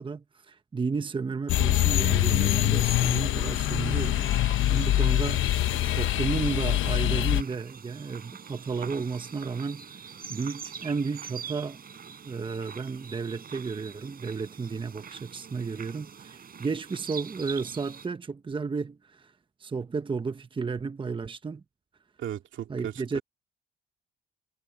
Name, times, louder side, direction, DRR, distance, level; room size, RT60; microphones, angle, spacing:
voice 1, 0.0-5.5 5.9-10.0 10.3-11.8 12.3-19.3 19.6-21.6 22.7-23.2, right 5 dB, 25° right, 0.9 m, -33 dB
sound 1, 1.5-7.4, left 14 dB, 80° left, 1.0 m, -24 dB
sound 2, 3.3-18.1, right 7 dB, 50° right, 4.7 m, -44 dB
voice 2, 22.2-23.2, right 10 dB, 75° right, 2.7 m, -36 dB
cardioid pair, 90°, 20 cm